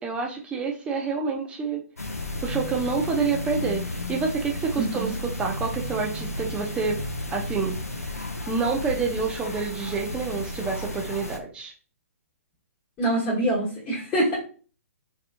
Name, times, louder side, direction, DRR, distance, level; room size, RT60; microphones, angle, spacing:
voice 1, 0.0-1.8 2.4-5.1 5.4-7.0 7.3-7.8 8.1-11.7, right 5 dB, 15° right, 1 dB, 0.4 m, -28 dB
sound 1, 2.0-11.4, left 1 dB, 85° left, 0.6 m, -33 dB
voice 2, 4.8-5.1 13.0-14.3, right 1 dB, 20° left, -6 dB, 1.1 m, -25 dB
3.3 x 2.8 x 2.4 m, 0.40 s
figure-of-eight pair, 125°, 8 cm